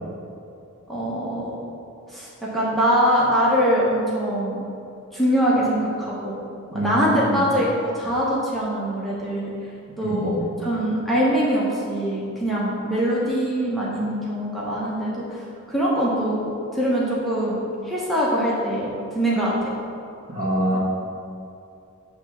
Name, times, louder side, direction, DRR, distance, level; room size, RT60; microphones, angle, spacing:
voice 1, 0.9-1.6 2.1-4.6 5.1-6.4 6.7-9.5 10.0-18.9 19.1-19.7 20.7-20.8, equal, ahead, -7 dB, 0.9 m, -23 dB
voice 2, 6.7-7.4 10.0-10.4 20.3-20.8, right 1 dB, 40° right, -4 dB, 1.2 m, -25 dB
6.6 x 3.4 x 6.0 m, 2.6 s
head